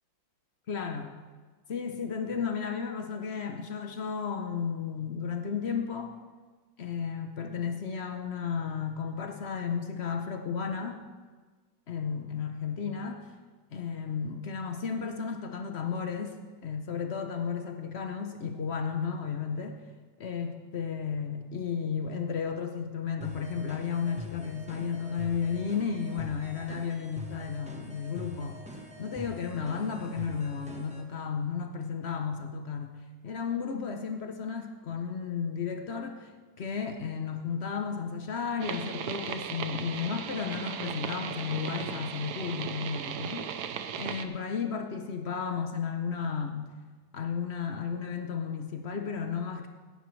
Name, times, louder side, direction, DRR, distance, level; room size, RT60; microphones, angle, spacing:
voice 1, 0.7-1.2 1.7-6.2 6.8-11.0 11.9-13.2 13.7-16.3 16.6-19.8 20.2-28.7 29.0-36.3 36.6-43.5 43.9-46.7 47.1-49.7, left 6 dB, 60° left, 5 dB, 0.7 m, -33 dB
sound 1, 23.2-31.0, left 1 dB, 5° right, 0.7 m, -44 dB
sound 2, 38.6-44.2, right 8 dB, 65° right, 1.1 m, -37 dB
16.0 x 11.0 x 3.2 m, 1.4 s
omnidirectional pair, 2.1 m